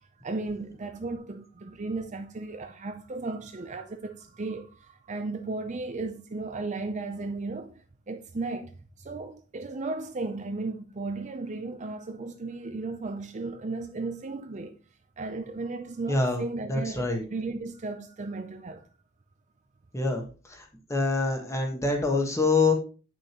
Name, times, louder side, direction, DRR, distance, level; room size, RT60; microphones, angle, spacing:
voice 1, 0.0-7.7 8.1-14.8 15.2-18.9, right 3 dB, 35° right, 0.5 m, -35 dB
voice 2, 16.1-16.4 16.7-17.2 19.9-20.2 20.5-20.6 20.9-22.7, left 3 dB, 15° left, 1.3 m, -25 dB
8.6 x 6.2 x 3.0 m
head